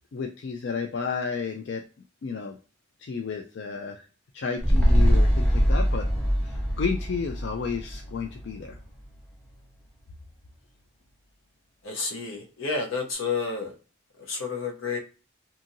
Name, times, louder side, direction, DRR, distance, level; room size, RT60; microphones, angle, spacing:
voice 1, 0.1-1.8 2.2-2.6 3.0-4.0 4.3-6.1 6.4-8.8, left 5 dB, 60° left, 3 dB, 0.3 m, -32 dB
sound 1, 4.6-9.1 9.4-9.5, equal, 5° left, 0.7 m, -23 dB
voice 2, 11.8-13.7 14.3-15.0, left 4 dB, 85° left, 2 dB, 0.8 m, -30 dB
2.7 x 2.6 x 2.6 m, 0.35 s
head